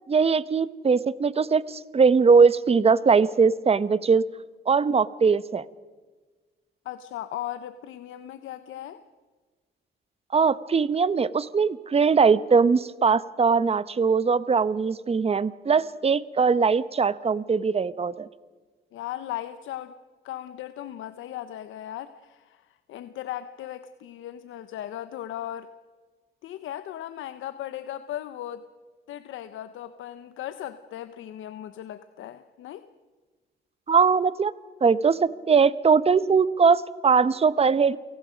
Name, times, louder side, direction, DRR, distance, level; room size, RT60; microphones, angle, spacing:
voice 1, 0.1-4.2 4.7-5.6 10.3-18.3 33.9-34.5 34.8-38.0, right 5 dB, 30° right, 17 dB, 0.9 m, -21 dB
voice 2, 6.8-9.0 18.9-19.9 20.2-25.7 26.4-28.6 29.1-32.8, left 12 dB, 80° left, 11 dB, 0.9 m, -37 dB
28.5 x 18.0 x 5.2 m, 1.3 s
cardioid pair, 90°, 20 cm